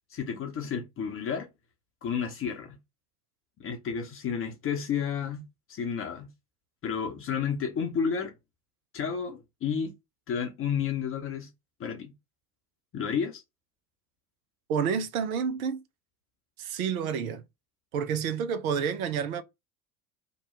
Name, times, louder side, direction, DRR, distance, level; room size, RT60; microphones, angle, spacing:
voice 1, 0.1-1.5 2.0-2.8 3.6-5.4 5.7-6.3 6.8-8.3 8.9-9.9 10.3-11.5 11.8-12.1 12.9-13.4, left 7 dB, 30° left, 0.7 m, -31 dB
voice 2, 14.7-15.8 16.6-17.4 17.9-19.4, right 7 dB, 65° right, 0.7 m, -29 dB
2.9 x 2.2 x 4.2 m
figure-of-eight pair, 70°, 45 cm